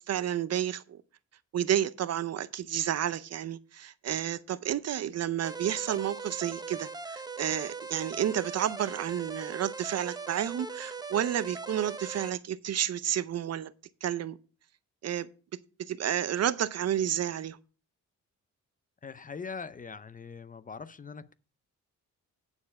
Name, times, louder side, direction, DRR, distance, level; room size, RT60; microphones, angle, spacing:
voice 1, 0.1-1.0 1.5-13.7 14.0-14.4 15.0-15.3 15.8-17.6, right 10 dB, 55° right, 0.6 m, -31 dB
sound 1, 5.4-12.3, right 4 dB, 15° right, 0.7 m, -40 dB
voice 2, 19.0-21.3, left 5 dB, 25° left, 0.4 m, -42 dB
9.6 x 4.5 x 6.9 m
cardioid pair, 130°, 31 cm